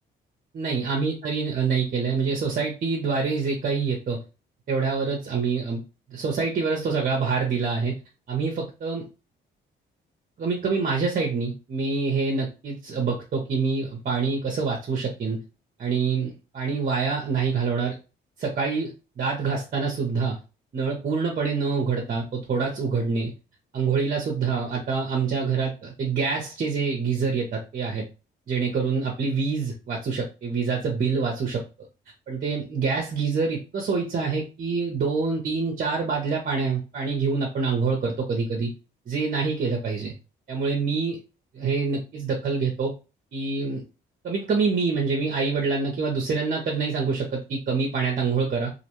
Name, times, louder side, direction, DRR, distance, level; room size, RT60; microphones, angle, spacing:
voice 1, 0.5-4.2 4.7-5.8 6.1-8.0 8.3-9.0 10.4-15.4 15.8-18.0 18.4-20.4 20.7-23.3 23.7-28.0 28.5-31.6 32.3-38.7 39.1-40.1 40.5-41.2 41.5-42.9 43.3-43.8 44.2-48.7, right 4 dB, 45° right, 1 dB, 0.7 m, -26 dB
2.4 x 2.1 x 2.9 m, 0.31 s
cardioid pair, 90°, 20 cm